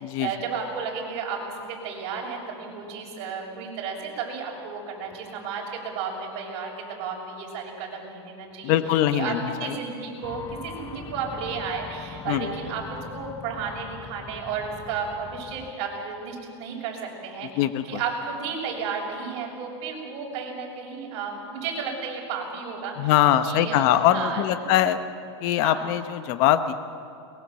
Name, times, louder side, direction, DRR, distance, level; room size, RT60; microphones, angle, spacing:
voice 1, 0.2-8.8 9.1-17.5 17.8-23.1 23.5-24.8 25.6-25.8, right 5 dB, 45° right, -1 dB, 6.7 m, -33 dB
voice 2, 8.6-9.8 12.3-12.5 17.5-17.8 23.0-25.0 25.4-26.7, left 11 dB, 45° left, 10 dB, 1.1 m, -22 dB
sound 1, 10.2-15.7, left 7 dB, 25° left, 1.0 m, -42 dB
22.5 x 20.5 x 7.7 m, 2.5 s
supercardioid pair, 150°, 15 cm